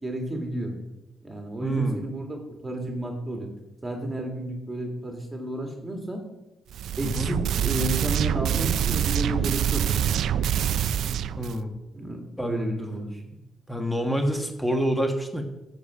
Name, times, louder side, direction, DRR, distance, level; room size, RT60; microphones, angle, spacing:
voice 1, 0.0-0.7 1.2-3.5 3.8-6.2 7.0-10.1 11.9-13.3, right 1 dB, 15° right, 2 dB, 2.2 m, -32 dB
voice 2, 1.6-2.0 7.0-7.3 11.4-11.7 12.4-12.7 13.7-15.4, right 1 dB, 5° left, 4 dB, 1.4 m, -27 dB
sound 1, 6.7-11.6, right 9 dB, 70° right, 0.4 m, -25 dB
14.0 x 6.8 x 5.0 m, 0.96 s
cardioid pair, 155°, 0 cm